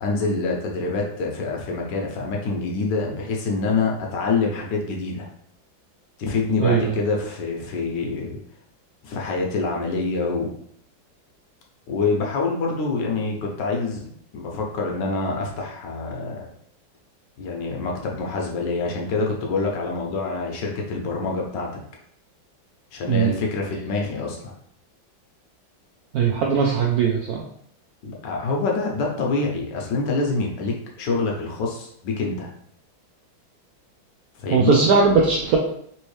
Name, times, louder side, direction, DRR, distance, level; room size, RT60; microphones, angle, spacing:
voice 1, 0.0-5.3 6.2-8.4 9.0-10.5 11.9-16.4 17.4-21.8 22.9-24.5 28.0-32.5 34.4-34.8, left 3 dB, 70° left, 0 dB, 1.3 m, -26 dB
voice 2, 6.6-7.0 23.1-23.3 26.1-27.4 34.5-35.6, right 5 dB, 75° right, -1 dB, 0.8 m, -19 dB
3.4 x 2.9 x 3.2 m, 0.68 s
omnidirectional pair, 2.1 m